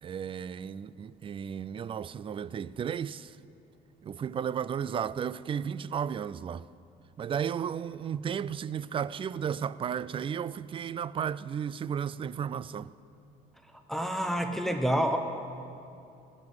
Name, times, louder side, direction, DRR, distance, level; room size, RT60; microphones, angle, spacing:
voice 1, 0.0-3.3 4.0-6.6 7.2-12.9, right 8 dB, 30° right, 0.4 m, -34 dB
voice 2, 13.9-15.2, equal, ahead, 0.9 m, -28 dB
19.0 x 7.6 x 8.0 m
cardioid pair, 110°, 17 cm